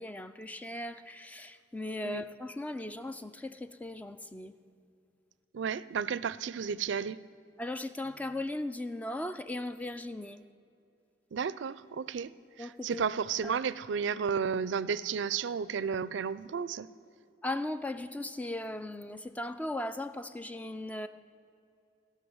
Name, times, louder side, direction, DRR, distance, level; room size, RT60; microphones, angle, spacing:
voice 1, 0.0-4.6 7.6-10.4 12.6-13.0 13.4-13.6 17.4-21.1, left 1 dB, 10° left, 11 dB, 0.3 m, -38 dB
voice 2, 5.5-7.2 11.3-16.9, right 6 dB, 75° right, 18 dB, 0.4 m, -33 dB
17.0 x 5.7 x 7.9 m, 2.6 s
head